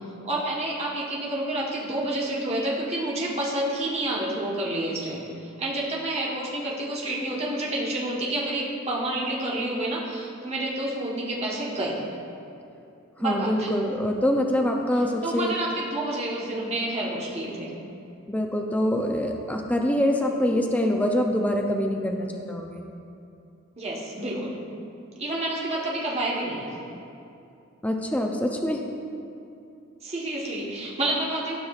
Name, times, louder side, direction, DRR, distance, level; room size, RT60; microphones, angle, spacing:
voice 1, 0.2-5.3 5.6-12.0 13.2-13.7 15.2-17.7 23.8-24.5 25.2-26.7 30.0-31.6, right 1 dB, 30° right, -5 dB, 1.1 m, -29 dB
voice 2, 13.2-15.5 18.3-22.8 27.8-28.8, left 1 dB, 5° left, 2 dB, 0.4 m, -25 dB
12.5 x 5.8 x 2.4 m, 2.6 s
head